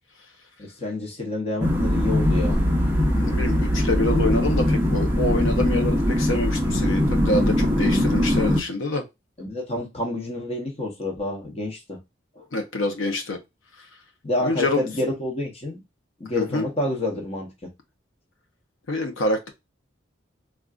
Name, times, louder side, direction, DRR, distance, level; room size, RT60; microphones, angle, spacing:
voice 1, 0.6-2.6 9.4-12.0 12.4-12.5 14.2-15.8 16.2-17.7, left 1 dB, 30° left, 0.8 m, -28 dB
sound 1, 1.6-8.6, equal, 10° right, 0.5 m, -21 dB
voice 2, 3.2-9.0 12.5-13.4 14.4-14.8 16.3-16.7 18.9-19.5, left 2 dB, 90° left, 0.6 m, -26 dB
3.7 x 2.3 x 2.3 m
head